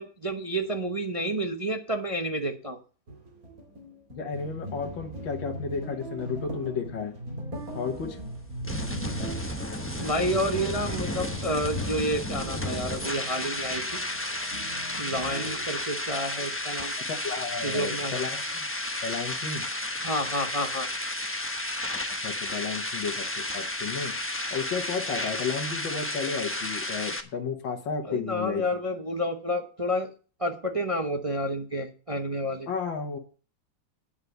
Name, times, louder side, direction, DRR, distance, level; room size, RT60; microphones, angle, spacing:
voice 1, 0.0-2.8 10.0-13.8 15.0-16.9 17.6-18.2 20.0-20.9 28.0-30.1 30.4-32.7, equal, 25° right, 3 dB, 0.7 m, -30 dB
sound 1, 3.1-15.7, right 1 dB, 45° right, 2.7 m, -40 dB
voice 2, 4.2-7.1 7.7-8.2 17.0-18.7 19.0-19.6 22.2-24.1 24.5-28.6 32.7-33.2, left 5 dB, 70° left, 2 dB, 2.0 m, -33 dB
sound 2, 7.5-27.2, left 1 dB, 10° left, 0.6 m, -32 dB
9.9 x 5.8 x 8.0 m, 0.38 s
omnidirectional pair, 2.2 m